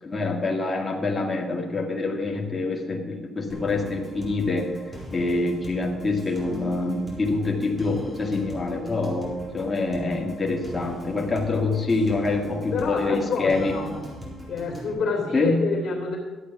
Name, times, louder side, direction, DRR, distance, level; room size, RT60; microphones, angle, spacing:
voice 1, 0.0-4.7 5.1-13.8 15.3-15.7, left 3 dB, 25° left, -1 dB, 1.9 m, -25 dB
sound 1, 3.5-14.9, equal, 15° right, 4.4 m, -40 dB
voice 2, 12.7-14.1 14.5-16.2, left 5 dB, 55° left, -1 dB, 2.7 m, -28 dB
12.0 x 8.4 x 5.9 m, 1.4 s
cardioid pair, 90°, 0 cm